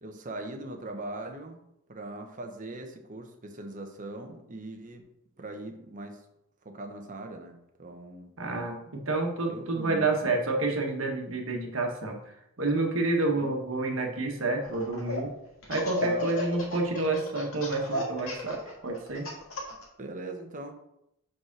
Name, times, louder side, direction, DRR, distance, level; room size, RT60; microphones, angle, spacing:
voice 1, 0.0-1.6 1.9-5.1 5.4-6.2 6.6-8.3 9.5-10.3 13.3-13.5 16.0-16.3 20.0-20.7, right 2 dB, 35° right, 4 dB, 1.0 m, -40 dB
voice 2, 8.4-12.2 12.6-15.3 15.7-19.3, right 2 dB, 65° right, 2 dB, 1.4 m, -29 dB
Laughter, 14.6-15.2 15.6-19.8, left 2 dB, 75° left, 2.0 m, -34 dB
5.2 x 4.9 x 6.0 m, 0.82 s
head